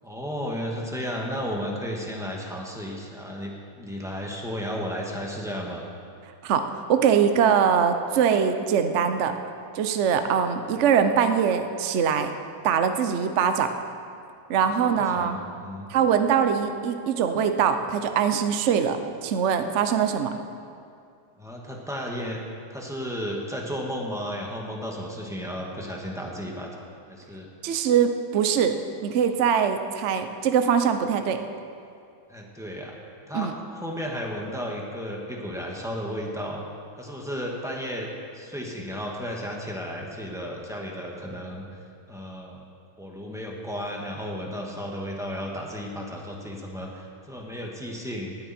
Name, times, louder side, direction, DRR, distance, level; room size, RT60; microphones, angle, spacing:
voice 1, 0.0-5.8 15.0-15.9 21.4-27.5 32.3-32.9 33.3-36.6 37.0-38.1 38.3-41.7 42.1-42.6 43.0-48.4, equal, ahead, -2 dB, 1.4 m, -33 dB
voice 2, 6.4-9.4 9.7-12.3 12.6-13.7 14.5-15.4 15.9-20.3 27.6-28.8 29.0-31.4 33.3-33.5, right 7 dB, 65° right, 8 dB, 0.7 m, -22 dB
19.0 x 9.7 x 4.4 m, 2.4 s
omnidirectional pair, 2.2 m